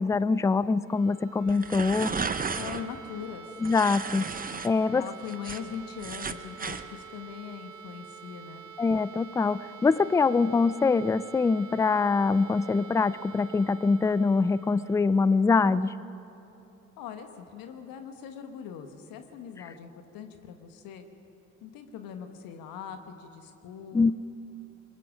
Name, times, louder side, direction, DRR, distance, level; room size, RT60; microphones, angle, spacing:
voice 1, 0.0-2.1 3.6-4.3 4.6-5.0 8.8-16.0 23.9-24.1, left 4 dB, 10° left, 18 dB, 0.4 m, -24 dB
sound 1, 0.7-16.5, right 7 dB, 50° right, 1.3 m, -47 dB
sound 2, 1.5-2.8 3.6-4.7 5.1-6.8, right 5 dB, 20° right, 1.0 m, -34 dB
voice 2, 2.5-3.6 4.9-8.7 17.0-21.1 21.6-24.1, left 8 dB, 60° left, 7 dB, 1.4 m, -41 dB
27.0 x 21.5 x 5.1 m, 3.0 s
figure-of-eight pair, 50°, 38 cm